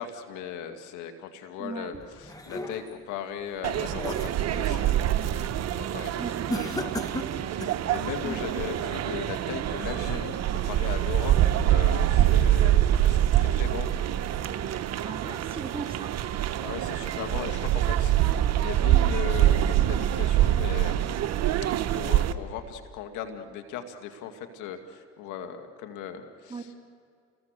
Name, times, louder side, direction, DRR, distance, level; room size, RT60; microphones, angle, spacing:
voice 1, 0.0-5.1 5.7-7.0 7.4-13.9 16.6-21.0 21.9-26.7, left 8 dB, 75° left, 6 dB, 2.1 m, -38 dB
voice 2, 1.6-1.9 6.2-6.9 8.2-8.4 15.0-16.1 26.5-26.6, right 4 dB, 20° right, 4 dB, 2.5 m, -38 dB
sound 1, 1.9-3.1 3.6-4.9 5.3-5.6 6.5-7.9, left 1 dB, 10° left, 2.0 m, -36 dB
sound 2, 3.6-22.3, right 12 dB, 55° right, 1.2 m, -25 dB
29.5 x 21.5 x 6.6 m, 2.3 s
supercardioid pair, 70°, 31 cm